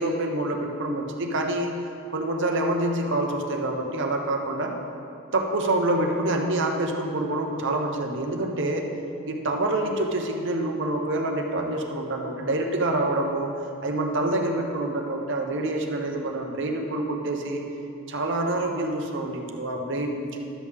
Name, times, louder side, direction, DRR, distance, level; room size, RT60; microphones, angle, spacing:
voice 1, 0.0-1.7 2.1-4.7 5.3-8.9 9.3-13.5 13.8-17.6 18.1-20.4, right 2 dB, 60° right, 2 dB, 1.0 m, -26 dB
12.0 x 8.3 x 3.6 m, 2.7 s
head